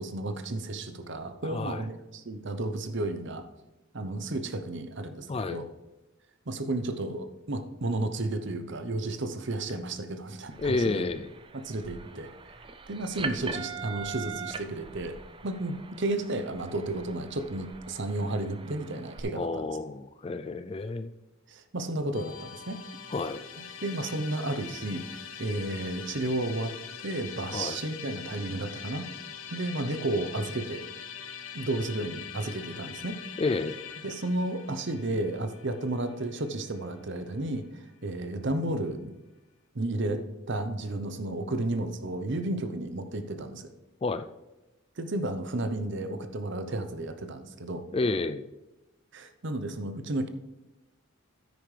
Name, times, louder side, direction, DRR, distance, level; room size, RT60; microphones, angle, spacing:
voice 1, 0.0-3.4 3.9-5.7 6.5-11.0 11.5-12.3 12.9-15.2 15.4-19.7 21.5-22.8 23.6-26.7 27.0-29.1 29.5-30.8 31.5-33.2 34.0-39.1 39.7-43.7 45.0-47.8 49.1-50.3, right 2 dB, 55° right, 9 dB, 0.8 m, -32 dB
voice 2, 1.4-1.8 5.3-5.6 10.6-11.3 19.3-21.1 23.1-23.4 27.5-27.8 33.4-33.8 44.0-44.3 47.9-48.4, left 3 dB, 25° left, 11 dB, 0.3 m, -30 dB
sound 1, 10.5-19.2, right 5 dB, 25° right, 0.5 m, -42 dB
Musical instrument, 22.1-37.3, left 8 dB, 75° left, 0.9 m, -43 dB
9.8 x 9.2 x 3.3 m, 1.0 s
head